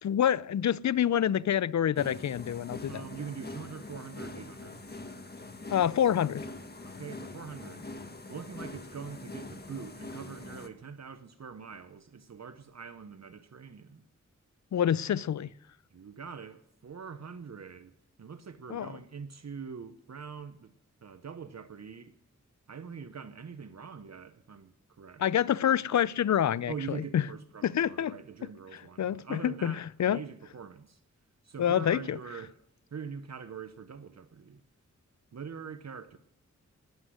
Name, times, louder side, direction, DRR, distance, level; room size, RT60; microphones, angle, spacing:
voice 1, 0.0-3.0 5.7-6.5 14.7-15.5 18.7-18.9 25.2-27.2 27.6-28.2 29.0-29.7 30.0-30.2 31.6-32.2, left 10 dB, 65° left, 0.5 m, -27 dB
sound 1, 2.0-10.7, left 2 dB, 30° left, 1.7 m, -43 dB
voice 2, 2.9-4.8 6.8-7.9 8.3-14.0 15.9-17.9 18.2-20.7 21.0-22.2 22.7-25.2 26.7-31.0 31.4-32.6 32.9-34.6 35.3-36.2, right 6 dB, 60° right, 0.8 m, -43 dB
20.0 x 8.0 x 6.3 m
cardioid pair, 55°, 31 cm